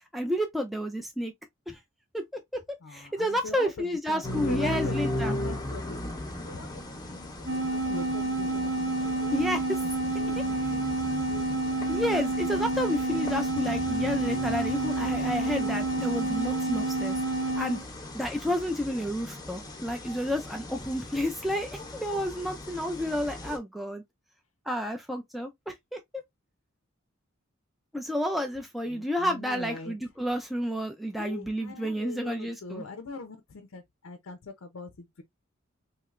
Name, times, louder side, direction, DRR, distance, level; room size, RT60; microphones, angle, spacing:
voice 1, 0.0-1.3 1.7-1.8 2.1-2.6 2.9-5.4 9.3-9.8 11.9-17.2 17.5-17.8 18.1-24.0 24.7-26.2 27.9-32.8, equal, ahead, 0.3 m, -31 dB
voice 2, 2.8-3.7 4.1-6.0 6.4-9.7 10.2-11.4 28.9-30.0 31.1-35.2, left 3 dB, 75° left, 0.5 m, -42 dB
sound 1, 4.2-23.6, left 1 dB, 20° left, 0.7 m, -37 dB
sound 2, 7.5-17.8, right 2 dB, 70° right, 0.8 m, -29 dB
3.2 x 2.8 x 2.3 m
head